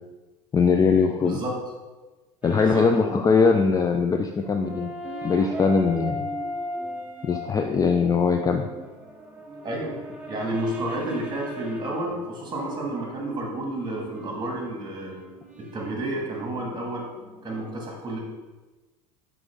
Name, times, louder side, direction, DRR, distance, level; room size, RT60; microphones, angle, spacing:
voice 1, 0.5-1.4 2.4-4.9 5.2-6.3 7.2-8.7, left 5 dB, 20° left, 5 dB, 0.4 m, -21 dB
sound 1, 2.4-3.2 3.5-3.7 3.9-7.5 8.3-17.7, left 1 dB, 5° right, 1.0 m, -39 dB
voice 2, 2.5-2.9 9.6-10.0 10.3-15.1 15.6-17.1 17.4-18.2, right 1 dB, 20° right, 0 dB, 2.0 m, -30 dB
6.0 x 4.6 x 3.6 m, 1.2 s
hypercardioid pair, 75°, 20 cm